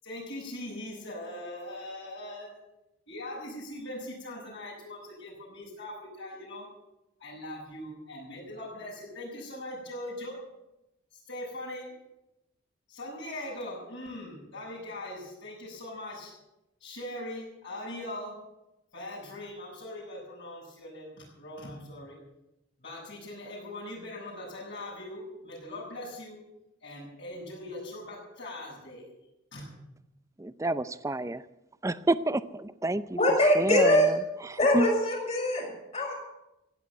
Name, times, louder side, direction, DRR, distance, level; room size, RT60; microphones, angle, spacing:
voice 1, 0.0-2.5 3.1-6.7 7.2-10.3 11.3-11.9 12.9-16.3 16.8-18.3 18.9-22.2 22.8-26.4 26.8-29.1 29.5-29.6, left 1 dB, 55° left, -10 dB, 6.7 m, -41 dB
voice 2, 30.4-31.5 31.8-33.2 33.5-34.9, right 1 dB, 15° right, 15 dB, 0.4 m, -29 dB
voice 3, 33.2-34.1 34.6-36.1, left 1 dB, 30° left, 1 dB, 4.8 m, -23 dB
16.0 x 8.6 x 9.2 m, 0.93 s
head